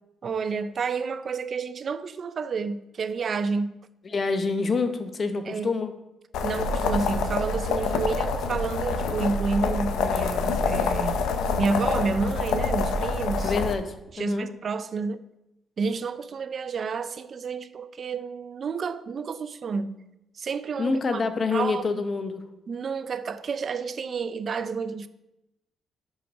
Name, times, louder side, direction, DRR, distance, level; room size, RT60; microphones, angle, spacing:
voice 1, 0.2-3.8 5.5-5.7 6.4-11.2 11.6-13.5 14.1-15.2 15.8-20.0 20.4-21.2 21.5-21.9 22.7-25.1, right 4 dB, 50° right, 0.4 m, -30 dB
voice 2, 4.0-5.9 13.4-14.5 20.8-22.4, left 4 dB, 40° left, 0.8 m, -27 dB
sound 1, 6.3-13.7, left 4 dB, 85° left, 0.7 m, -26 dB
5.8 x 5.6 x 5.4 m
cardioid pair, 90°, 0 cm